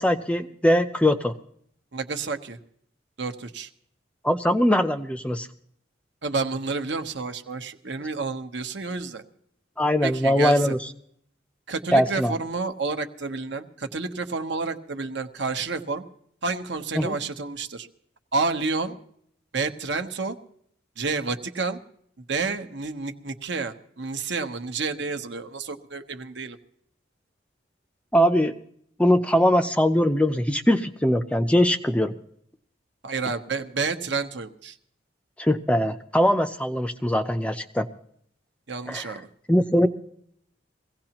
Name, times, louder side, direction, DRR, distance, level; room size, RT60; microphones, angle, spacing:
voice 1, 0.0-1.3 4.2-5.5 9.8-10.8 11.9-12.3 17.0-17.2 28.1-28.5 29.0-32.1 35.4-37.9 38.9-39.2 39.5-39.9, equal, 5° left, 7 dB, 0.5 m, -21 dB
voice 2, 1.9-2.6 3.2-3.7 6.2-9.2 10.0-10.8 11.7-16.0 16.4-17.9 18.3-19.0 19.5-20.4 21.0-21.8 22.3-26.6 33.0-34.8 38.7-39.3, right 4 dB, 70° right, 7 dB, 1.0 m, -30 dB
22.5 x 16.5 x 2.9 m, 0.68 s
head